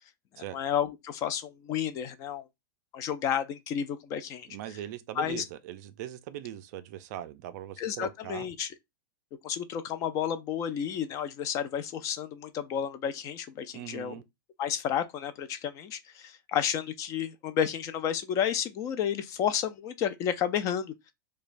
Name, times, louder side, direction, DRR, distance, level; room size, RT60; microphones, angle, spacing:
voice 1, 0.4-2.4 2.9-4.5 5.2-5.4 7.8-8.7 9.4-14.2 14.6-21.1, left 9 dB, 25° left, 0.3 m, -31 dB
voice 2, 4.5-8.5 13.7-14.2, right 12 dB, 50° right, 0.4 m, -40 dB
4.9 x 2.2 x 2.5 m
supercardioid pair, 150°, 12 cm